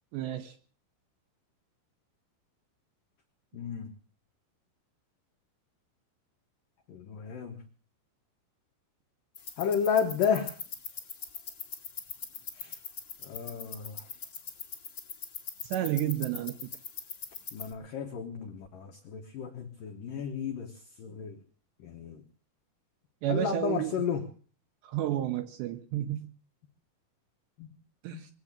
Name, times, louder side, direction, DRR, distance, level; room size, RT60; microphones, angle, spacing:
voice 1, 0.1-0.5 15.7-16.7 23.2-23.9 24.9-26.3 28.0-28.3, right 12 dB, 75° right, 7 dB, 2.7 m, -31 dB
voice 2, 3.5-3.9 6.9-7.6 9.6-10.6 12.6-12.8 13.2-14.1 17.5-21.4 21.8-22.2 23.3-24.3 27.6-27.7 28.1-28.2, left 7 dB, 80° left, 3 dB, 1.9 m, -32 dB
sound 1, 9.3-17.7, left 6 dB, 50° left, 1.4 m, -42 dB
22.5 x 8.3 x 7.3 m, 0.44 s
omnidirectional pair, 5.8 m